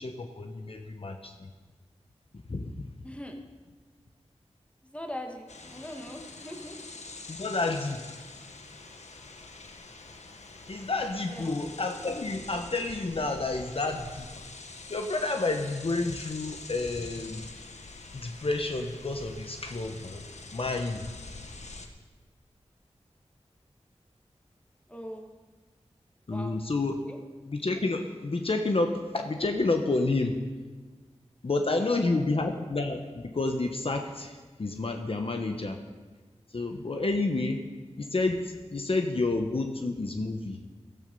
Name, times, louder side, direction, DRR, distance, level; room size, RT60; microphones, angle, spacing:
voice 1, 0.0-1.5 2.5-2.7 7.3-8.2 10.7-14.3 14.9-17.4 18.1-20.2 20.5-21.1 26.3-27.0 27.4-30.4 31.4-35.8 36.5-37.6 38.0-40.6, left 2 dB, 55° left, 5 dB, 1.1 m, -30 dB
voice 2, 3.0-3.4 4.9-6.8 11.3-11.5 24.9-25.3 26.3-26.6 27.0-27.2 31.7-32.3, equal, 10° left, 3 dB, 1.9 m, -41 dB
sound 1, 5.5-21.9, left 3 dB, 85° left, 1.3 m, -45 dB
15.5 x 13.5 x 5.5 m, 1.3 s
wide cardioid pair, 75°, 11 cm